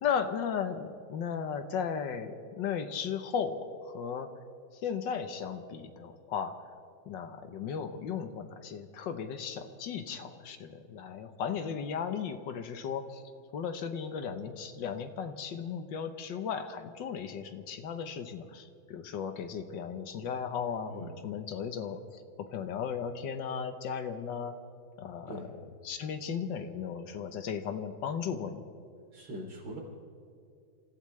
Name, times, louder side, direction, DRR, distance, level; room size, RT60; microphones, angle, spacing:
voice 1, 0.0-4.3 4.8-6.5 7.1-13.2 13.5-24.5 25.0-25.5 25.8-28.6, left 7 dB, 70° left, 8 dB, 1.6 m, -36 dB
voice 2, 29.1-29.8, equal, 80° right, 0 dB, 3.7 m, -42 dB
27.5 x 15.5 x 3.2 m, 2.4 s
omnidirectional pair, 2.1 m